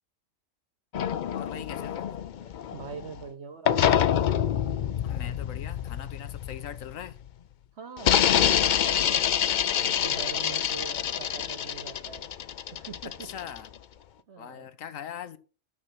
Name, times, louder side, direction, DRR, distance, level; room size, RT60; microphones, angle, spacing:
sound 1, 0.9-3.2 3.7-7.3 8.0-13.8, left 9 dB, 60° left, 0.5 m, -26 dB
voice 1, 1.3-2.1 5.0-7.2 13.2-13.7 14.4-15.4, left 9 dB, 90° left, 1.2 m, -41 dB
voice 2, 2.5-4.3 7.7-12.3 12.7-13.1 14.3-14.7, right 6 dB, 55° right, 1.5 m, -43 dB
9.4 x 6.5 x 5.8 m
omnidirectional pair, 1.3 m